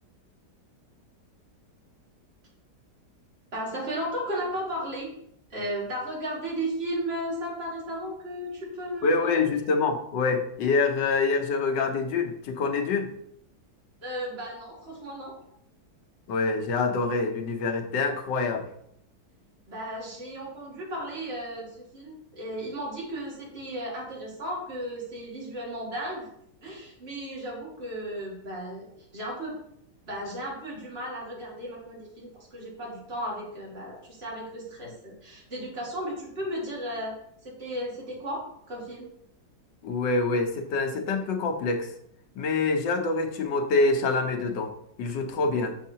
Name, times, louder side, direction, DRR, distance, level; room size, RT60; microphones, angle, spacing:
voice 1, 3.5-5.1 5.5-9.4 14.0-15.3 19.7-26.3 26.6-29.6 30.0-37.1 37.4-39.1, right 1 dB, 35° right, -4 dB, 2.2 m, -35 dB
voice 2, 9.0-13.1 16.3-18.7 39.8-41.9 42.3-44.7 45.0-45.8, left 3 dB, 90° left, 4 dB, 1.5 m, -26 dB
6.4 x 6.4 x 2.8 m, 0.73 s
omnidirectional pair, 1.9 m